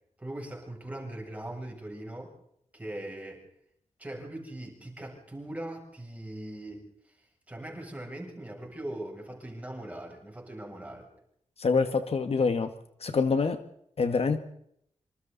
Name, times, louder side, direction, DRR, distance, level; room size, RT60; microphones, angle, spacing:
voice 1, 0.2-2.3 2.7-3.4 4.0-6.8 7.5-11.1, right 1 dB, 10° right, 0 dB, 7.5 m, -40 dB
voice 2, 11.6-12.7 13.0-13.6 14.0-14.4, left 4 dB, 55° left, 8 dB, 1.7 m, -25 dB
26.5 x 26.5 x 4.1 m, 0.72 s
wide cardioid pair, 155°, 12 cm